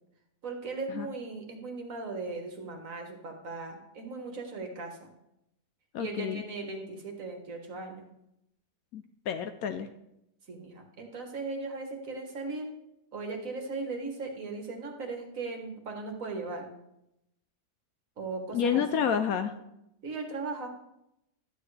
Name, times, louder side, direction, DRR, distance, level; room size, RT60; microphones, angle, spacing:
voice 1, 0.4-5.0 6.0-8.1 10.5-12.7 13.1-16.7 18.2-19.1 20.0-20.7, right 3 dB, 55° right, 3 dB, 1.7 m, -38 dB
voice 2, 5.9-6.4 8.9-9.9 18.5-19.5, left 7 dB, 70° left, 8 dB, 0.9 m, -29 dB
12.0 x 9.3 x 3.3 m, 0.84 s
omnidirectional pair, 1.8 m